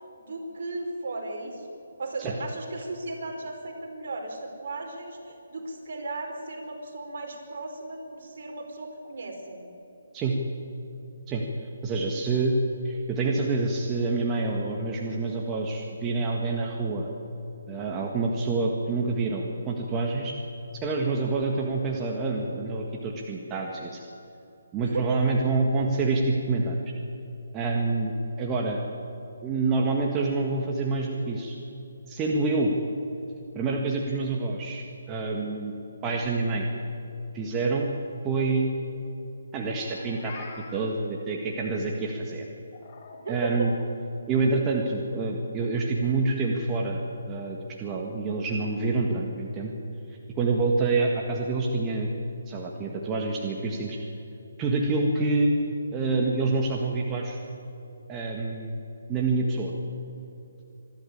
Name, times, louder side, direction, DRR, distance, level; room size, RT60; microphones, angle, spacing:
voice 1, 0.2-9.6 24.8-25.4 43.2-43.7, right 2 dB, 55° right, 2 dB, 4.7 m, -35 dB
voice 2, 11.3-12.6 12.8-17.1 17.7-20.3 20.8-24.0 24.7-26.8 27.5-28.1 28.4-28.8 29.4-31.6 32.1-32.7 33.5-35.7 36.0-36.7 37.3-37.9 38.2-38.7 39.5-40.5 40.7-42.5 43.3-43.7 44.3-47.0 47.3-49.7 50.4-52.1 52.5-54.0 54.6-55.6 55.9-57.4 58.1-58.8 59.1-59.7, right 3 dB, 15° right, 0 dB, 1.7 m, -27 dB
Meow, 39.7-40.9 42.7-43.8, left 5 dB, 40° left, 3.2 m, -45 dB
25.5 x 12.0 x 8.8 m, 2.9 s
hypercardioid pair, 155°, 0 cm